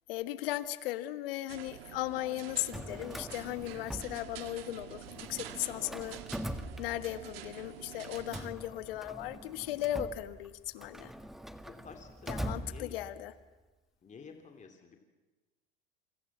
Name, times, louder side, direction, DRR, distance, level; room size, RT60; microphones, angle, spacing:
voice 1, 0.1-6.2 6.8-11.1 12.3-13.3, left 14 dB, 70° left, 13 dB, 1.5 m, -37 dB
sound 1, 1.5-8.5, right 11 dB, 75° right, 2.0 m, -47 dB
Drawer open or close, 2.5-4.7 5.0-7.4 8.0-13.3, equal, ahead, 1.6 m, -43 dB
voice 2, 11.8-12.9 14.0-15.0, left 5 dB, 25° left, 4 dB, 2.9 m, -51 dB
28.0 x 25.0 x 7.4 m, 1.2 s
hypercardioid pair, 90°, 30 cm